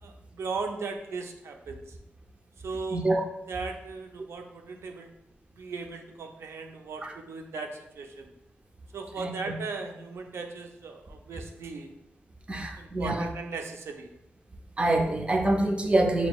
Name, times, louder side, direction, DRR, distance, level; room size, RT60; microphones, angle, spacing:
voice 1, 0.0-2.0 2.6-3.0 3.5-5.1 5.6-8.3 8.9-11.9 12.5-14.1, right 4 dB, 90° right, 4 dB, 0.5 m, -37 dB
voice 2, 2.9-3.2 7.0-7.1 9.2-9.3 12.5-13.3 14.8-16.3, right 1 dB, 25° right, 4 dB, 0.5 m, -25 dB
5.9 x 2.9 x 2.3 m, 0.85 s
wide cardioid pair, 120°, 4 cm